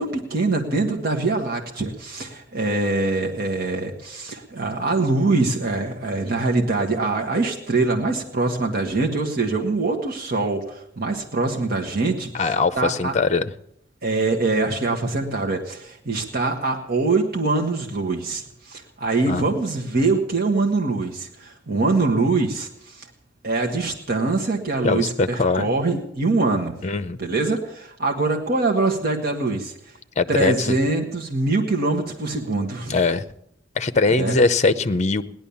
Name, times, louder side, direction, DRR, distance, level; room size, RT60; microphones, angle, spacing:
voice 1, 0.0-13.1 14.0-23.1 23.4-26.7 27.2-29.7 30.3-33.0 34.2-34.4, right 3 dB, 55° right, 0 dB, 1.6 m, -23 dB
voice 2, 12.3-13.5 19.3-19.4 24.8-25.7 26.8-27.2 30.2-30.7 32.9-33.2 33.8-35.2, left 3 dB, 40° left, 12 dB, 0.7 m, -21 dB
17.5 x 11.0 x 7.2 m, 0.74 s
head